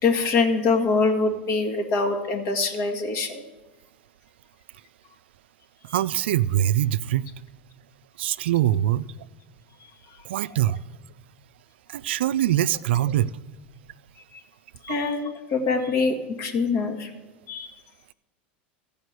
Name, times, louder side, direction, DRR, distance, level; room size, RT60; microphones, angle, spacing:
voice 1, 0.0-3.4 5.9-6.0 10.1-10.6 14.3-14.4 14.8-17.1 17.5-17.7, left 4 dB, 50° left, 5 dB, 1.7 m, -24 dB
voice 2, 5.9-7.3 8.2-9.1 10.2-10.8 11.9-13.3 14.9-15.0, right 12 dB, 75° right, 16 dB, 0.3 m, -23 dB
14.5 x 5.2 x 8.0 m, 1.2 s
hypercardioid pair, 100°, 6 cm